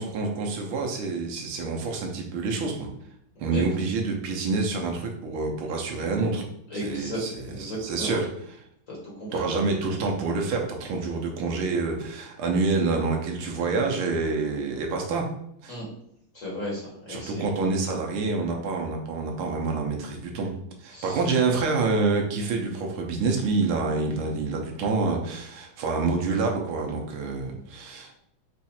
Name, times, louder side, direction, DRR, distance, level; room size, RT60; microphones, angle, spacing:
voice 1, 0.0-2.9 3.4-6.4 6.7-8.6 9.3-15.3 15.6-15.8 17.1-20.5 20.8-28.2, right 3 dB, 75° right, 1 dB, 1.6 m, -27 dB
voice 2, 6.7-7.2 7.5-8.2 8.9-9.4 15.7-15.9 16.3-17.4 20.9-21.2, equal, 40° left, -5 dB, 1.5 m, -34 dB
5.3 x 2.4 x 4.2 m, 0.73 s
omnidirectional pair, 2.4 m